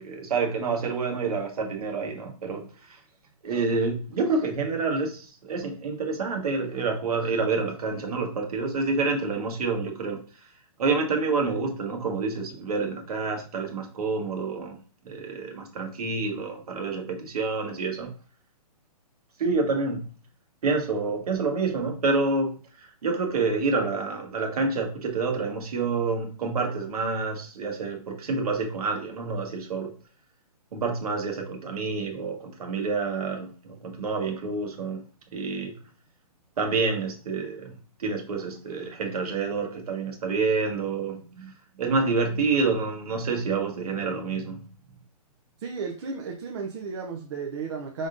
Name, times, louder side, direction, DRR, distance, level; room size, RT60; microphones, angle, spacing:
voice 1, 0.0-3.0 3.4-10.2 10.8-14.8 15.0-18.1 19.4-20.1 20.6-29.9 30.7-35.0 35.3-35.8 36.6-44.7, right 4 dB, 70° right, 1.5 m, -28 dB
voice 2, 45.6-48.1, right 4 dB, 45° right, 0.7 m, -33 dB
5.1 x 3.6 x 2.6 m
hypercardioid pair, 155°, 20 cm